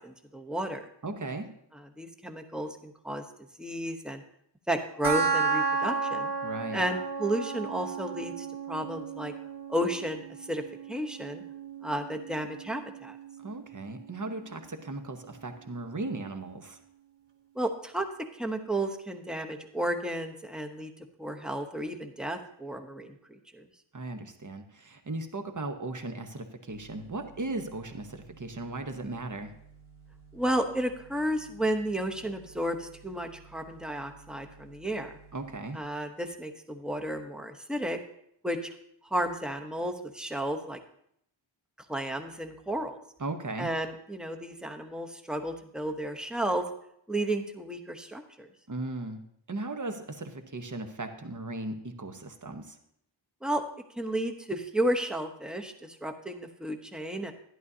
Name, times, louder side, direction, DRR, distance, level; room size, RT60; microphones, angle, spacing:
voice 1, 0.0-0.9 1.7-3.2 3.6-4.2 4.7-6.3 6.7-9.3 9.7-10.6 10.9-11.4 11.8-13.2 17.5-18.1 18.3-20.9 21.2-23.7 30.3-35.2 35.7-38.0 38.4-38.7 39.0-40.8 41.9-43.0 43.6-46.7 47.1-48.5 53.4-53.6 54.0-57.3, right 1 dB, ahead, 4 dB, 0.9 m, -32 dB
voice 2, 1.0-1.5 6.4-6.8 13.4-16.8 23.9-29.5 35.3-35.8 43.2-43.7 48.7-49.2 49.5-52.8, right 2 dB, 40° right, 6 dB, 1.0 m, -37 dB
sound 1, 5.0-16.0, right 4 dB, 60° right, 1.1 m, -34 dB
sound 2, 26.7-35.6, right 5 dB, 85° right, 1.3 m, -55 dB
11.5 x 11.0 x 2.8 m, 0.71 s
wide cardioid pair, 70°, 48 cm